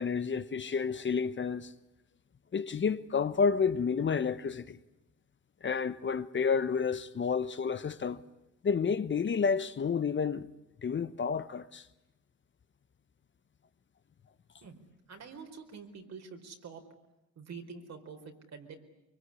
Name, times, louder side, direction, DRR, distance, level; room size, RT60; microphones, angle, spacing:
voice 1, 0.0-1.7 2.5-4.8 5.6-8.2 8.6-10.5 10.8-11.9, left 6 dB, 40° left, 1.1 m, -30 dB
voice 2, 15.1-16.8 17.4-18.8, right 5 dB, 60° right, 4.6 m, -46 dB
24.5 x 23.5 x 9.9 m
cardioid pair, 90°, 30 cm